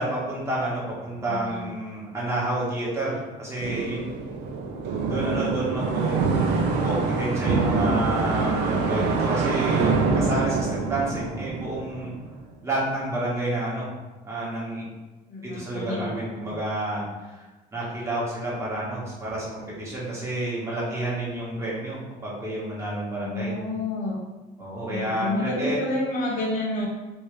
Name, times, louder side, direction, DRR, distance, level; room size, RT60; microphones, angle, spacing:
voice 1, 0.0-4.0 5.1-6.2 6.7-12.1 12.6-13.9 14.2-14.8 15.4-17.4 17.7-23.5 24.6-25.8, right 1 dB, 15° right, -7 dB, 1.5 m, -29 dB
voice 2, 1.3-1.7 15.3-16.1 23.2-24.2 24.8-26.9, left 1 dB, 55° left, -4 dB, 1.1 m, -29 dB
sound 1, 3.6-12.4, right 4 dB, 90° right, 0.5 m, -25 dB
3.2 x 3.1 x 3.2 m, 1.2 s
cardioid pair, 110°, 17 cm